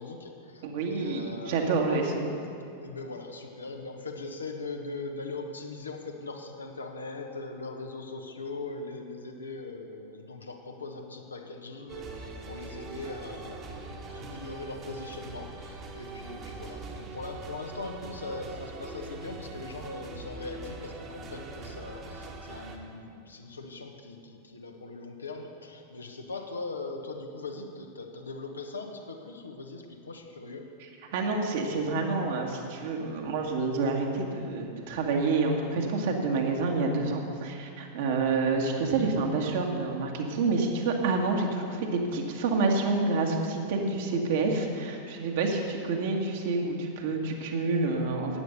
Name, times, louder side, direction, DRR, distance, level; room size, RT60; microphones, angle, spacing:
voice 1, 0.0-2.2 2.8-30.7, left 3 dB, 75° left, 3 dB, 1.3 m, -40 dB
voice 2, 0.6-2.3 31.1-48.4, right 3 dB, 55° right, 1 dB, 1.9 m, -28 dB
sound 1, 11.9-22.8, right 3 dB, 30° right, 1.6 m, -42 dB
13.0 x 9.4 x 6.7 m, 2.5 s
figure-of-eight pair, 90°, 0 cm